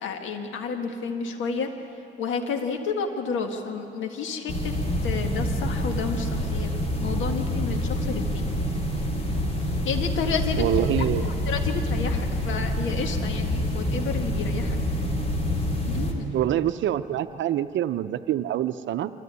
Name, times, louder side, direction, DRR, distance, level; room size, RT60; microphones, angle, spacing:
voice 1, 0.0-1.7 2.2-4.7 5.0-6.7 7.0-8.5 9.8-10.6 11.2-14.8 15.9-16.3, left 5 dB, 75° left, 4 dB, 1.7 m, -31 dB
sound 1, 4.5-16.1, left 1 dB, 30° left, 3.5 m, -27 dB
voice 2, 10.6-11.3 16.3-19.1, right 12 dB, 70° right, 11 dB, 0.7 m, -26 dB
25.5 x 14.0 x 9.5 m, 2.9 s
cardioid pair, 90°, 20 cm